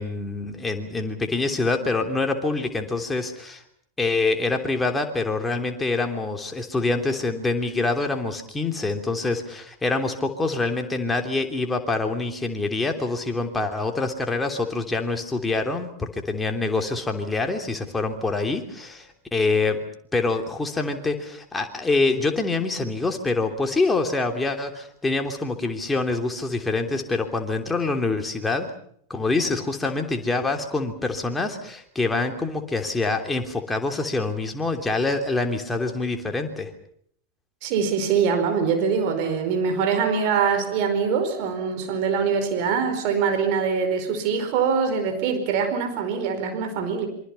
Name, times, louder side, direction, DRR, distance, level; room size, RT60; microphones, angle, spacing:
voice 1, 0.0-3.6 4.0-19.8 20.1-28.7 29.1-36.7, left 3 dB, 10° left, 5 dB, 3.2 m, -25 dB
voice 2, 37.6-47.1, right 6 dB, 45° right, 6 dB, 4.7 m, -23 dB
27.5 x 25.0 x 5.7 m, 0.65 s
figure-of-eight pair, 90°, 0 cm